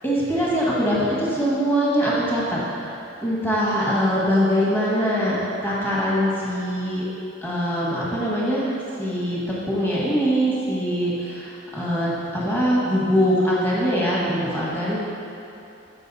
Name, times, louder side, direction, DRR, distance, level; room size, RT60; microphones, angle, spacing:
voice 1, 0.0-5.4 5.6-7.0 7.4-9.4 9.7-15.0, equal, 10° left, -7 dB, 1.5 m, -23 dB
8.4 x 4.9 x 4.1 m, 2.8 s
head